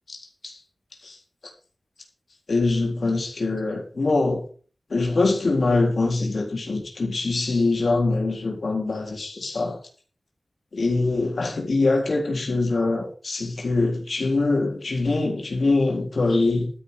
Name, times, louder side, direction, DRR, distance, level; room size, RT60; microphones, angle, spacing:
voice 1, 0.1-0.6 1.0-1.2 2.5-4.4 4.9-9.8 10.7-16.7, left 3 dB, 65° left, 4.0 m, -23 dB
13.0 x 10.0 x 5.2 m
wide cardioid pair, 70°, 0 cm